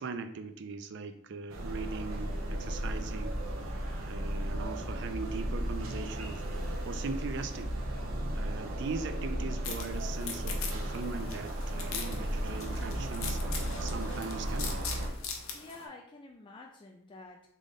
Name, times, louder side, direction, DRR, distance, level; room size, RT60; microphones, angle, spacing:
voice 1, 0.0-3.4 4.1-6.4 6.8-7.7 8.4-14.8, right 4 dB, 55° right, 9 dB, 0.4 m, -40 dB
sound 1, 1.5-15.1, right 1 dB, 75° right, 0.8 m, -35 dB
sound 2, 9.6-15.8, left 5 dB, 70° left, 0.7 m, -41 dB
voice 2, 15.5-17.5, left 2 dB, 20° left, 0 dB, 0.3 m, -49 dB
3.7 x 3.7 x 3.5 m, 0.75 s
head